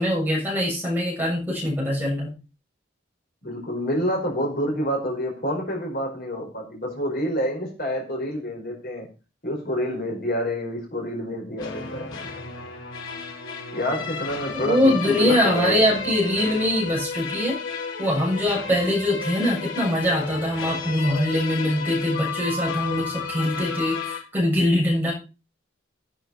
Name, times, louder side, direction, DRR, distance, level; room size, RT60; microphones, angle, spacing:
voice 1, 0.0-2.3 14.5-17.6 18.0-25.1, left 1 dB, 10° right, -3 dB, 7.4 m, -23 dB
voice 2, 3.4-9.1 9.4-12.1 13.7-15.9, equal, 50° left, 0 dB, 5.2 m, -28 dB
sound 1, 11.6-24.2, left 5 dB, 85° left, 4.0 m, -33 dB
16.5 x 9.1 x 4.3 m, 0.31 s
head